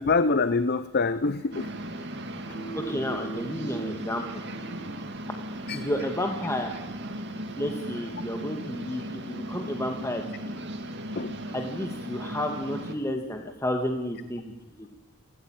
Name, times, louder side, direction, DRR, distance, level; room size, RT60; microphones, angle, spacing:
voice 1, 0.0-1.7 2.5-2.6 5.7-5.8 11.2-11.4, left 3 dB, 50° left, 13 dB, 0.8 m, -25 dB
sound 1, 1.3-5.8, right 5 dB, 70° left, 5.2 m, -43 dB
sound 2, 1.5-12.9, equal, 55° right, 2.3 m, -37 dB
voice 2, 2.7-4.3 5.7-6.8 7.6-10.5 11.5-14.9, left 1 dB, 15° left, 4 dB, 1.8 m, -31 dB
28.5 x 14.5 x 9.0 m, 1.0 s
head